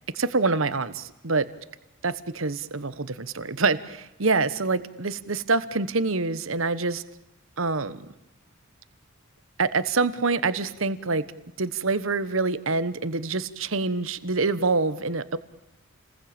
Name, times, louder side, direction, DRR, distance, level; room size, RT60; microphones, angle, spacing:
voice 1, 0.1-1.5 2.0-7.0 7.6-8.1 9.6-11.2 11.6-15.4, right 3 dB, 70° right, 14 dB, 1.3 m, -26 dB
29.5 x 20.5 x 8.9 m, 0.91 s
head